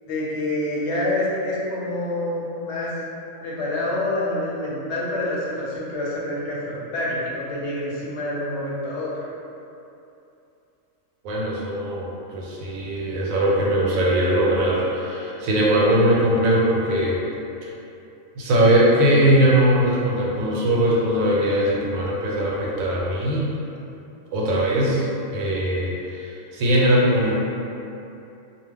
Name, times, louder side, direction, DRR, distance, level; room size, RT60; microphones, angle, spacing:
voice 1, 0.1-2.9 3.4-9.1, left 1 dB, 65° left, -6 dB, 0.9 m, -27 dB
voice 2, 11.2-12.1 12.3-17.2 17.6-17.7 18.3-23.5 24.3-25.1 25.3-27.4, right 1 dB, 85° right, -4 dB, 1.0 m, -20 dB
2.4 x 2.2 x 3.4 m, 2.8 s
omnidirectional pair, 1.4 m